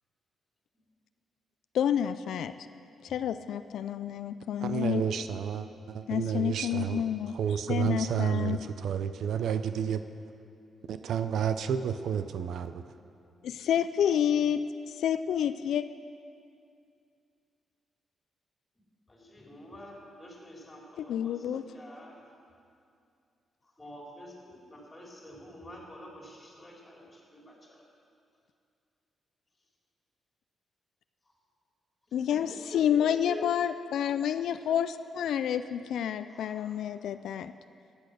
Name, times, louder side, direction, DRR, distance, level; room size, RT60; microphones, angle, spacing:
voice 1, 1.7-2.5 3.0-5.0 6.1-8.6 13.4-15.8 21.0-21.6 32.1-37.5, left 9 dB, 80° left, 11 dB, 0.3 m, -29 dB
voice 2, 4.6-7.0 7.3-10.0 10.9-12.8, right 8 dB, 75° right, 10 dB, 0.5 m, -30 dB
voice 3, 19.1-22.2 23.6-27.8 31.2-31.3 32.1-32.2 32.7-33.5 36.3-36.8, left 2 dB, 15° left, -3 dB, 3.5 m, -47 dB
14.5 x 8.8 x 6.4 m, 2.4 s
cardioid pair, 125°, 0 cm